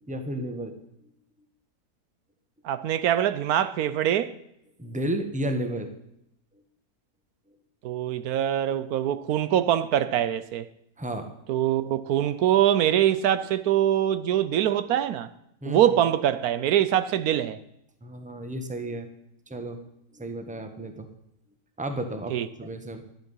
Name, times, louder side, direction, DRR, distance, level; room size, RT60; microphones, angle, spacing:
voice 1, 0.0-0.8 4.8-5.9 11.0-11.3 15.6-16.0 18.0-19.1 19.5-19.8 20.1-21.1 21.8-23.0, right 1 dB, 5° right, 1.0 m, -32 dB
voice 2, 2.6-4.3 7.8-10.7 11.5-15.3 15.6-17.6 22.3-22.5, right 11 dB, 80° right, 1.1 m, -23 dB
12.0 x 11.0 x 5.4 m
omnidirectional pair, 1.6 m